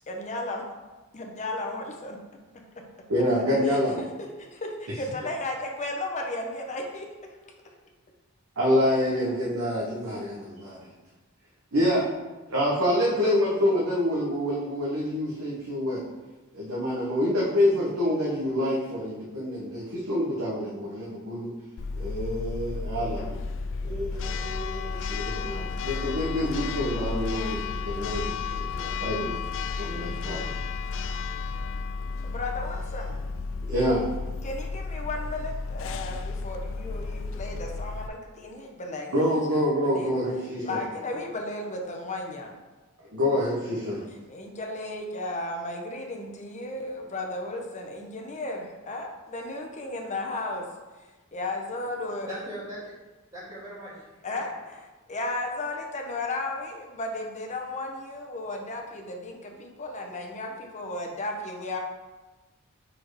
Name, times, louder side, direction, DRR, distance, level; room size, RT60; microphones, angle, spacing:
voice 1, 0.1-0.6 1.1-2.2 3.7-4.1 4.4-7.4 32.2-33.1 34.4-39.6 39.9-40.1 40.6-42.6 44.3-50.7 51.0-52.3 54.2-61.8, left 2 dB, 35° left, 2 dB, 0.8 m, -34 dB
voice 2, 3.1-4.0 8.6-10.8 11.7-12.1 12.5-16.0 16.5-21.5 21.9-23.4 23.8-30.6 33.7-34.1 39.1-40.7 43.1-44.0, left 1 dB, 70° right, -6 dB, 1.1 m, -27 dB
Church bell, 21.8-38.1, left 4 dB, 60° left, 0.4 m, -33 dB
voice 3, 52.1-52.9 53.3-54.3, equal, 25° right, -12 dB, 1.8 m, -39 dB
4.6 x 4.4 x 4.7 m, 1.2 s
head